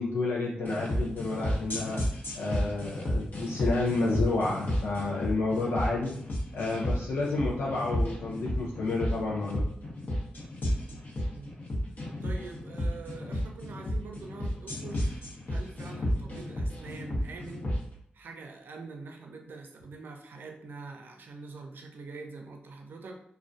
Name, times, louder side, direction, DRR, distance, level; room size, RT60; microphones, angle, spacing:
voice 1, 0.0-2.0 2.3-6.2 6.5-9.7, left 3 dB, 90° left, -3 dB, 0.4 m, -30 dB
sound 1, 0.7-17.8, equal, 60° left, 0.7 m, -32 dB
voice 2, 12.2-17.7 18.1-23.2, right 3 dB, 70° right, 3 dB, 0.4 m, -44 dB
2.3 x 2.1 x 2.5 m, 0.68 s
supercardioid pair, 45°, 4 cm